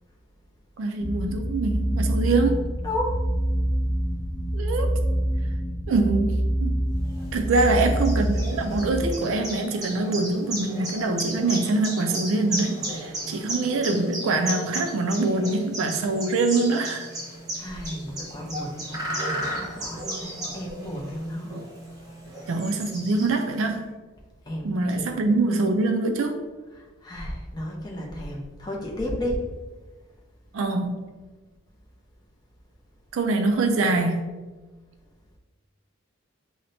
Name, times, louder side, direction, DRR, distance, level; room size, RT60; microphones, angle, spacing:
voice 1, 0.8-2.6 4.5-4.9 5.9-6.7 7.3-17.1 21.5-21.6 22.5-23.9 24.6-26.5 30.5-31.1 33.1-34.2, right 3 dB, 80° right, 5 dB, 0.4 m, -24 dB
sound 1, 1.0-9.1, right 1 dB, 55° left, 1.2 m, -26 dB
voice 2, 2.8-3.2 17.6-21.5 24.5-25.1 26.7-29.4, left 1 dB, 20° left, -2 dB, 0.5 m, -33 dB
sound 2, 7.1-23.6, right 1 dB, 20° right, 0.8 m, -35 dB
5.6 x 2.1 x 2.6 m, 1.3 s
head